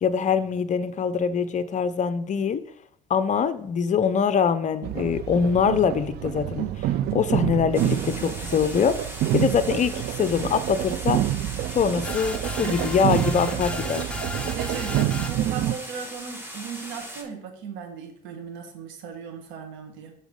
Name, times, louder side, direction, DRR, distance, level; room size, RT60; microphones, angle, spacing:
voice 1, 0.0-2.6 3.1-6.9 7.1-9.0 9.3-11.2 11.7-14.1, left 6 dB, 35° left, 13 dB, 0.6 m, -23 dB
sound 1, 4.8-15.8, right 13 dB, 50° right, 0.4 m, -28 dB
sound 2, 7.7-17.2, equal, 10° right, 1.9 m, -39 dB
sound 3, 12.0-15.5, left 1 dB, 5° left, 0.8 m, -34 dB
voice 2, 14.5-20.1, right 6 dB, 65° right, 4 dB, 1.6 m, -36 dB
7.1 x 3.9 x 5.3 m, 0.65 s
hypercardioid pair, 70°, 21 cm